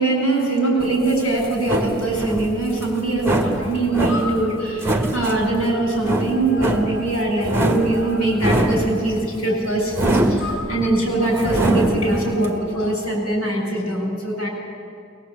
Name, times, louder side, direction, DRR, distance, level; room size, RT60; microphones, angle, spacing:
voice 1, 0.0-14.5, right 2 dB, 85° left, 2 dB, 6.9 m, -22 dB
sound 1, 0.8-12.5, right 1 dB, 10° right, 1.8 m, -24 dB
sound 2, 4.0-13.2, left 1 dB, 70° left, 5.1 m, -37 dB
21.5 x 21.0 x 8.5 m, 2.3 s
head